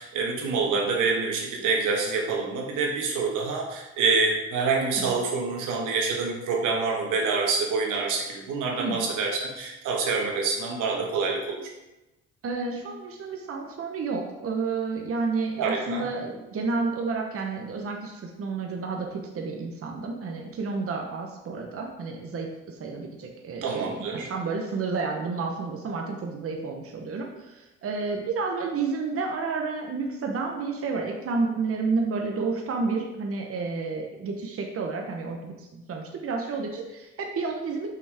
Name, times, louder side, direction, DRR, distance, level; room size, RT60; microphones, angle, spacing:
voice 1, 0.0-11.7 15.6-16.0 23.6-24.3, right 4 dB, 85° right, 0 dB, 1.4 m, -26 dB
voice 2, 12.4-24.0 24.2-37.9, right 4 dB, 50° right, 1 dB, 1.0 m, -30 dB
5.9 x 5.8 x 3.5 m, 1.0 s
cardioid pair, 90°, 30 cm